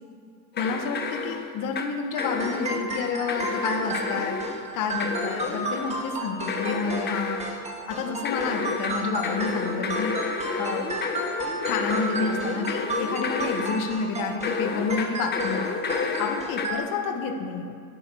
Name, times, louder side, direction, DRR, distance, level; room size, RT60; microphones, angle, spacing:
sound 1, 0.5-1.9 2.2-2.9 3.3-4.6 5.0-6.0 6.5-7.6 8.2-13.9 14.4-16.7, left 4 dB, 25° left, 0.9 m, -30 dB
voice 1, 0.6-7.5 7.9-10.1 10.6-11.0 11.7-15.8 16.2-17.8, left 5 dB, 50° left, 5 dB, 1.2 m, -29 dB
sound 2, 2.1-16.8, right 2 dB, 15° right, 1.5 m, -34 dB
11.0 x 11.0 x 4.7 m, 2.5 s
supercardioid pair, 125°, 42 cm